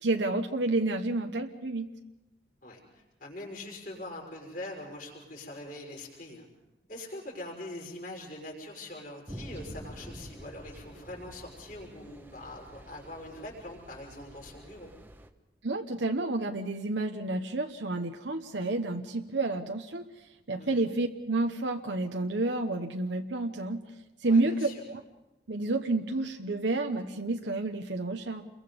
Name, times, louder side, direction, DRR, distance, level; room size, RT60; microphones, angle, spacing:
voice 1, 0.0-1.9 15.6-20.1 20.5-23.8 24.2-25.0 25.5-28.4, right 2 dB, 75° right, 4 dB, 1.2 m, -30 dB
voice 2, 2.6-6.5 6.9-14.9 20.6-20.8 24.2-24.8, left 1 dB, 50° left, -2 dB, 5.6 m, -43 dB
sound 1, 9.3-15.3, equal, 10° right, 1.2 m, -47 dB
29.0 x 22.5 x 5.4 m, 0.98 s
head